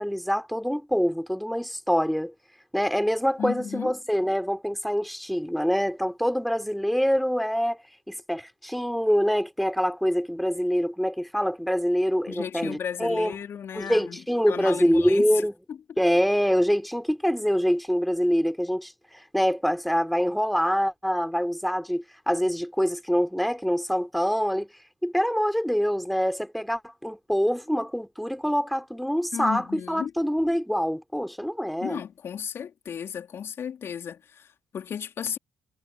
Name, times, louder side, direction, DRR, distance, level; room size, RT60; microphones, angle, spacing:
voice 1, 0.0-2.3 2.7-7.8 8.1-13.3 13.7-15.5 16.0-18.9 19.3-24.7 25.0-32.0, equal, ahead, 4.0 m, -25 dB
voice 2, 3.4-4.0 12.3-15.4 15.7-15.8 29.3-30.1 31.8-35.4, left 8 dB, 50° left, 3.8 m, -34 dB
figure-of-eight pair, 45°, 5 cm